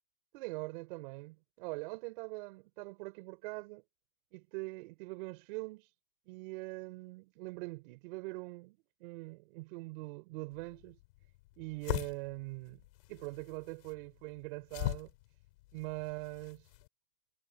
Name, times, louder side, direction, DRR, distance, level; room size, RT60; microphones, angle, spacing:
voice 1, 0.3-3.8 4.3-5.9 6.3-11.0 11.6-12.8 13.1-15.1 15.7-16.7, right 25 dB, 60° right, 5.3 m, -43 dB
sound 1, 10.5-16.9, left 20 dB, 65° left, 6.0 m, -42 dB
supercardioid pair, 140°, 30 cm